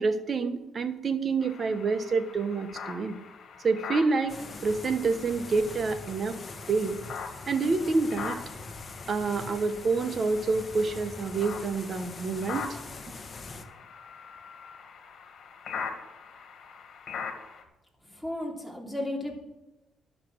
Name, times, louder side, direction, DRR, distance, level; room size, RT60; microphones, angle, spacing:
voice 1, 0.0-3.2 3.6-4.4 4.6-6.4 6.7-7.0 7.5-8.4 9.1-12.8, right 4 dB, 40° right, 9 dB, 1.3 m, -27 dB
sound 1, 1.4-17.6, left 6 dB, 65° left, 1.9 m, -42 dB
sound 2, 4.3-13.6, left 3 dB, 35° left, 1.4 m, -43 dB
voice 2, 18.1-19.3, left 1 dB, 5° left, -1 dB, 3.2 m, -34 dB
11.5 x 6.8 x 7.8 m, 0.97 s
cardioid pair, 90°, 0 cm